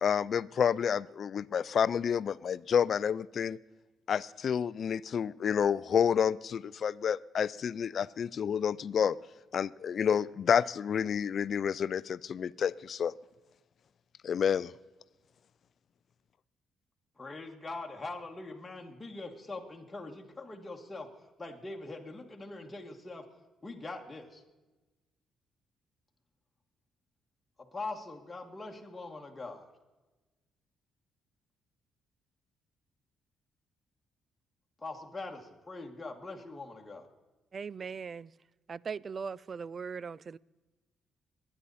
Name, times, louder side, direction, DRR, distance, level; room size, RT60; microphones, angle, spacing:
voice 1, 0.0-3.6 4.1-9.2 9.5-13.1 14.2-14.7, left 7 dB, 55° left, 0.4 m, -29 dB
voice 2, 17.2-21.1 21.4-23.3 23.6-24.4 27.6-29.7 34.8-37.1, left 2 dB, 20° left, 1.8 m, -42 dB
voice 3, 37.5-38.3 38.7-40.4, right 6 dB, 40° right, 0.3 m, -39 dB
22.5 x 9.9 x 4.2 m
cardioid pair, 90°, 0 cm